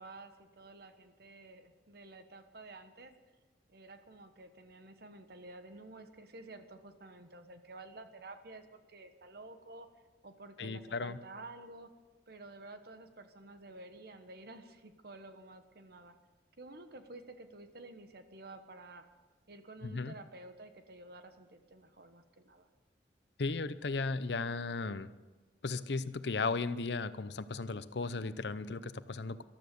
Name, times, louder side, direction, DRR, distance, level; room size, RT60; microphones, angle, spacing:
voice 1, 0.0-3.1 3.7-9.9 10.2-11.9 12.3-16.2 16.6-19.0 19.5-22.7, right 2 dB, 60° right, 8 dB, 1.3 m, -51 dB
voice 2, 10.6-11.2 19.8-20.1 23.4-25.1 25.6-29.4, left 3 dB, 70° left, 14 dB, 0.6 m, -36 dB
14.5 x 12.5 x 6.9 m, 1.2 s
head